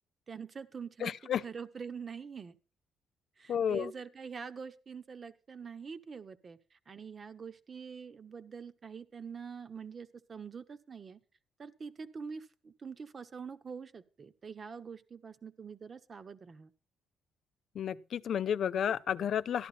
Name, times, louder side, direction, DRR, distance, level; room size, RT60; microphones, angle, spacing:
voice 1, 0.3-1.2 1.4-2.6 3.4-11.2 11.6-16.7, right 6 dB, 40° right, 1.1 m, -45 dB
voice 2, 1.0-1.4 3.5-3.9 17.7-19.7, left 8 dB, 60° left, 0.5 m, -31 dB
13.5 x 11.5 x 4.2 m
cardioid pair, 90°, 0 cm